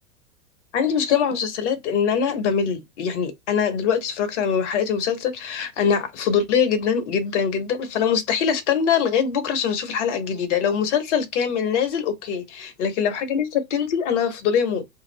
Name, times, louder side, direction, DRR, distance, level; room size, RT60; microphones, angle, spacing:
voice 1, 0.7-14.8, left 7 dB, 50° left, 1.0 m, -23 dB
2.7 x 2.1 x 3.1 m
figure-of-eight pair, 100°, 44 cm